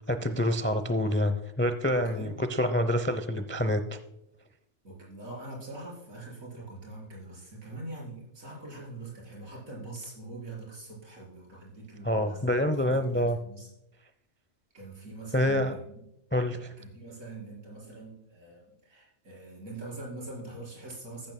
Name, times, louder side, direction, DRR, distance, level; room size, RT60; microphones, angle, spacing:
voice 1, 0.1-4.0 12.0-13.4 15.3-15.7 16.3-16.7, left 1 dB, 20° left, 10 dB, 0.3 m, -27 dB
voice 2, 1.9-2.3 4.8-12.4 12.8-13.7 14.7-16.0 16.8-21.3, right 2 dB, 80° right, -4 dB, 5.2 m, -43 dB
14.5 x 12.0 x 2.2 m, 0.83 s
omnidirectional pair, 1.4 m